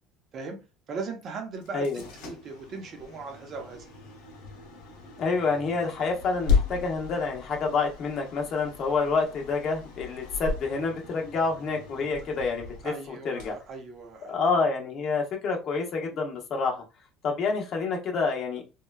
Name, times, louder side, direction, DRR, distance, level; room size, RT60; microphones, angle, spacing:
voice 1, 0.9-1.9 2.2-3.9 12.8-14.4, right 4 dB, 45° right, 4 dB, 0.7 m, -38 dB
sound 1, 1.5-14.5, left 5 dB, 85° left, 0.8 m, -35 dB
voice 2, 5.2-13.5 14.3-16.8 17.2-18.6, left 4 dB, 45° left, 1 dB, 0.7 m, -28 dB
3.0 x 2.2 x 2.2 m, 0.31 s
supercardioid pair, 115°, 0 cm